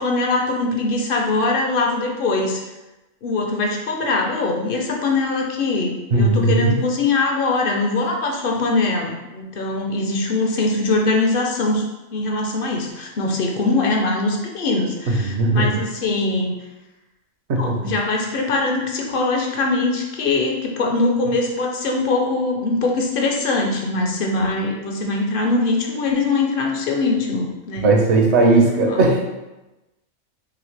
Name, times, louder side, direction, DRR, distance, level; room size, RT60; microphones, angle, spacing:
voice 1, 0.0-2.6 3.2-11.8 12.1-16.5 17.6-27.9 28.6-29.1, left 3 dB, 55° left, 1 dB, 0.7 m, -22 dB
voice 2, 6.1-6.8 15.1-15.7 17.5-17.9 27.8-29.2, right 2 dB, 60° right, 1 dB, 0.9 m, -17 dB
3.9 x 3.2 x 3.2 m, 1.0 s
omnidirectional pair, 1.4 m